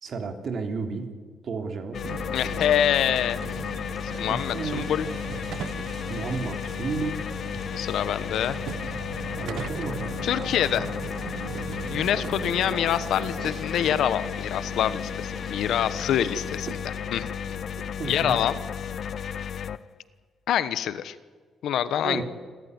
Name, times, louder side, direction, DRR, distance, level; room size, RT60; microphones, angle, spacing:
voice 1, 0.0-1.1 1.4-2.0 4.3-4.9 6.1-7.2 9.4-10.1 18.0-18.4 22.0-22.2, right 4 dB, 50° right, 5 dB, 3.3 m, -32 dB
sound 1, 1.9-19.8, left 8 dB, 55° left, 0.7 m, -33 dB
sound 2, 2.0-19.6, right 9 dB, 75° right, 0.8 m, -40 dB
voice 2, 2.3-3.6 4.0-5.1 7.7-8.6 10.2-10.9 11.9-17.3 18.1-18.6 20.5-21.2 21.6-22.2, left 10 dB, 80° left, 14 dB, 1.1 m, -26 dB
sound 3, 3.1-16.5, right 1 dB, 10° right, 3.2 m, -48 dB
28.0 x 13.5 x 9.6 m, 1.5 s
cardioid pair, 125°, 0 cm